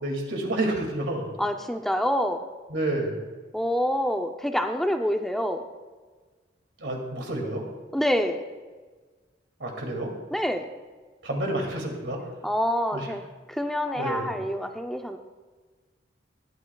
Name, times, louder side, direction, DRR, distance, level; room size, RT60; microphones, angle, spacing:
voice 1, 0.0-1.3 2.7-3.2 6.8-7.6 9.6-10.1 11.2-12.2 12.9-13.0 14.0-14.3, right 1 dB, 90° right, 1 dB, 2.3 m, -29 dB
voice 2, 1.4-2.4 3.5-5.6 7.9-8.4 10.3-10.7 12.4-15.2, equal, ahead, 5 dB, 0.5 m, -27 dB
20.5 x 8.7 x 2.3 m, 1.4 s
head